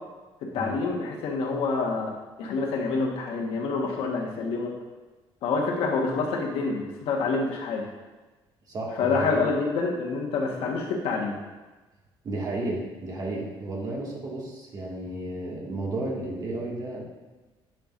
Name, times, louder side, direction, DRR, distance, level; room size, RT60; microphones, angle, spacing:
voice 1, 0.4-2.1 2.4-4.7 5.4-7.9 9.0-11.3, left 4 dB, 80° left, -1 dB, 1.4 m, -27 dB
voice 2, 8.7-9.5 12.2-17.0, right 2 dB, 40° right, -3 dB, 2.0 m, -33 dB
10.0 x 6.0 x 2.6 m, 1.2 s
cardioid pair, 125°, 10 cm